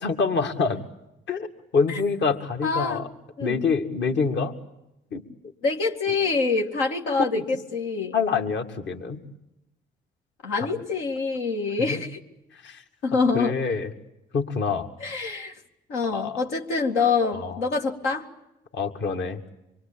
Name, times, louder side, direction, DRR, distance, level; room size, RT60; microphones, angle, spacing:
voice 1, 0.0-0.8 1.3-3.1 3.4-4.5 5.1-5.2 6.1-6.2 7.3-7.5 8.1-9.2 10.6-10.7 11.8-12.0 12.5-12.8 13.3-13.9 14.3-14.9 16.1-16.4 17.3-17.6 18.7-19.4, left 5 dB, 65° left, 5 dB, 2.3 m, -26 dB
voice 2, 2.6-3.0 3.4-3.6 5.6-8.2 10.4-12.2 13.0-13.5 15.0-15.6 15.9-18.3, left 4 dB, 90° left, 0 dB, 2.3 m, -25 dB
26.0 x 22.5 x 8.8 m, 0.90 s
supercardioid pair, 60°, 20 cm